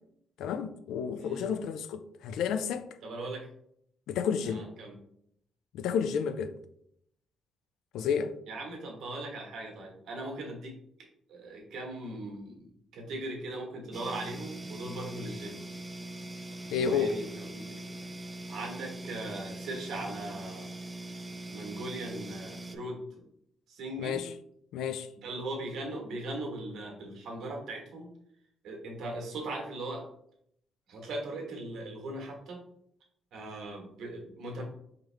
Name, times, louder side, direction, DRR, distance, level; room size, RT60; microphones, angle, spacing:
voice 1, 0.4-2.9 4.1-4.7 5.7-6.5 7.9-8.3 16.7-17.2 24.0-24.3 24.7-25.1, left 7 dB, 85° left, 0.3 m, -31 dB
voice 2, 3.0-3.5 4.4-5.0 8.5-10.8 11.3-15.6 16.8-17.8 18.5-20.7 21.5-23.0 23.7-24.2 25.2-28.1 28.6-30.0 30.9-32.6 33.3-34.6, right 2 dB, 75° right, 1.3 m, -39 dB
sound 1, 13.9-22.8, right 1 dB, 20° right, 0.5 m, -42 dB
3.9 x 3.0 x 3.2 m
cardioid pair, 90°, 0 cm